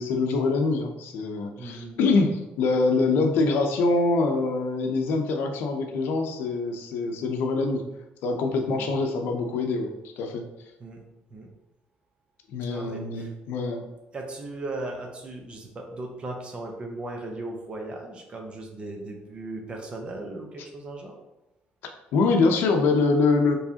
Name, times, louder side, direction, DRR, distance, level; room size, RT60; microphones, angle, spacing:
voice 1, 0.0-2.3 2.6-7.8 8.2-10.4 12.5-13.9 22.1-23.5, left 3 dB, 80° left, 4 dB, 0.6 m, -24 dB
voice 2, 1.6-2.0 8.6-8.9 10.8-11.0 11.3-11.5 12.7-13.3 14.1-21.2, right 2 dB, 30° right, 1 dB, 0.7 m, -37 dB
4.7 x 3.2 x 2.8 m, 0.95 s
cardioid pair, 140°, 4 cm